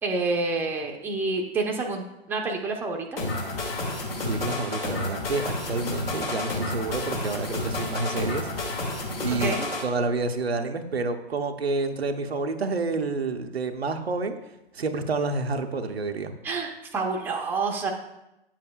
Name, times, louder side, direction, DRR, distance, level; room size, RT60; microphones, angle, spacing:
voice 1, 0.0-3.2 9.4-9.7 16.4-17.9, right 3 dB, 5° right, 1 dB, 0.6 m, -28 dB
sound 1, 3.2-9.8, left 2 dB, 70° left, 2.2 m, -30 dB
voice 2, 4.2-8.8 9.2-9.6 9.8-14.4 14.7-16.3, right 3 dB, 90° right, 5 dB, 0.8 m, -29 dB
9.0 x 7.4 x 2.3 m, 0.91 s
figure-of-eight pair, 115°, 30 cm